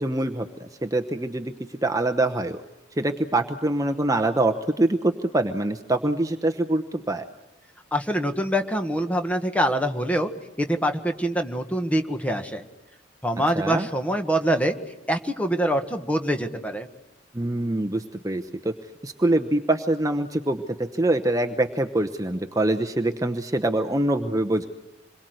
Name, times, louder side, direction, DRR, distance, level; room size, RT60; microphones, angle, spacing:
voice 1, 0.0-1.5 1.8-2.6 3.0-7.2 13.6-13.9 17.3-18.7 19.0-20.6 20.9-24.7, right 2 dB, 15° right, 5 dB, 0.9 m, -24 dB
voice 2, 7.9-10.3 10.6-12.6 13.2-14.7 15.1-16.9, equal, 5° left, 6 dB, 1.5 m, -24 dB
27.0 x 22.5 x 7.9 m, 1.0 s
head